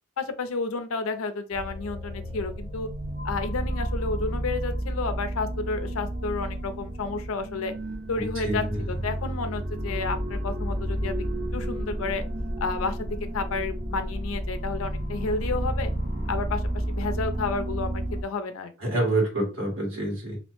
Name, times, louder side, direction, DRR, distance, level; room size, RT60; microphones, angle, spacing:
voice 1, 0.2-2.9 3.2-7.7 8.1-11.2 11.5-12.2 12.6-13.1 13.3-15.9 16.3-18.7, left 4 dB, 80° left, 9 dB, 0.5 m, -31 dB
sound 1, 1.5-18.2, right 1 dB, 35° right, 0.5 m, -31 dB
voice 2, 8.2-8.8 18.8-20.4, right 2 dB, 70° right, -1 dB, 1.5 m, -27 dB
2.7 x 2.0 x 3.0 m, 0.33 s
head